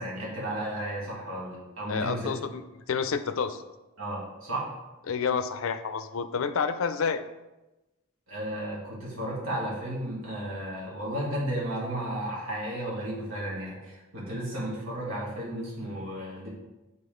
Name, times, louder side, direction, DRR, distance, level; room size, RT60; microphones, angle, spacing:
voice 1, 0.0-2.3 4.0-4.7 8.3-16.5, right 1 dB, 75° right, -5 dB, 2.0 m, -33 dB
voice 2, 1.9-2.6 2.9-3.6 5.1-7.2, left 6 dB, 70° left, 11 dB, 0.4 m, -29 dB
6.8 x 3.9 x 3.7 m, 1.0 s
head